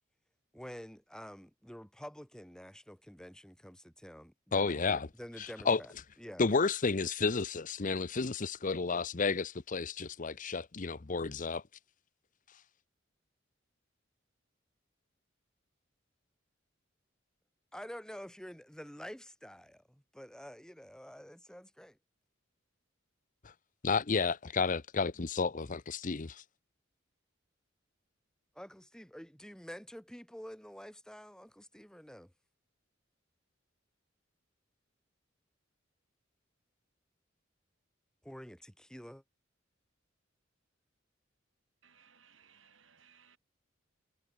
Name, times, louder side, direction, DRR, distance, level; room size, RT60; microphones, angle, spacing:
voice 1, 0.5-5.9 6.2-6.4 17.7-22.0 28.5-32.3 38.2-39.2, equal, 5° left, 5.0 m, -48 dB
voice 2, 4.5-5.1 5.4-5.8 6.4-11.6 23.4-23.5 23.8-26.4, left 4 dB, 40° left, 0.8 m, -31 dB
voice 3, 41.8-43.4, right 7 dB, 80° right, 5.1 m, -63 dB
head